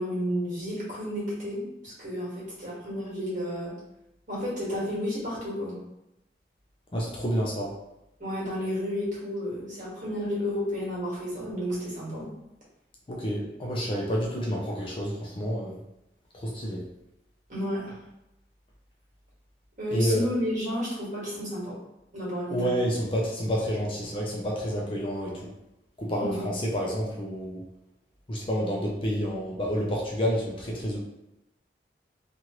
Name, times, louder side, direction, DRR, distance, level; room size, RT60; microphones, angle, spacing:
voice 1, 0.0-3.7 4.3-5.8 8.2-12.3 17.5-17.9 19.8-21.8 22.1-22.7 26.2-26.4, equal, 45° right, -6 dB, 1.4 m, -31 dB
voice 2, 6.9-7.7 13.1-15.8 16.3-16.8 19.9-20.3 22.5-25.5 26.0-27.6 28.3-31.0, equal, 30° left, -2 dB, 0.5 m, -29 dB
2.9 x 2.5 x 2.9 m, 0.90 s
head